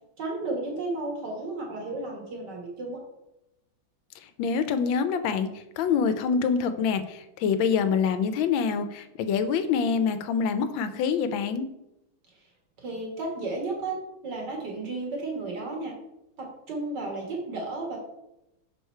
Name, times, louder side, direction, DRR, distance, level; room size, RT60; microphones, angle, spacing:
voice 1, 0.2-3.0 12.8-14.0 14.2-15.9 16.4-18.0, right 2 dB, 60° right, -1 dB, 2.3 m, -33 dB
voice 2, 4.4-5.5 5.8-11.7, left 6 dB, 90° left, 10 dB, 1.4 m, -25 dB
6.4 x 4.9 x 4.5 m, 0.89 s
omnidirectional pair, 2.1 m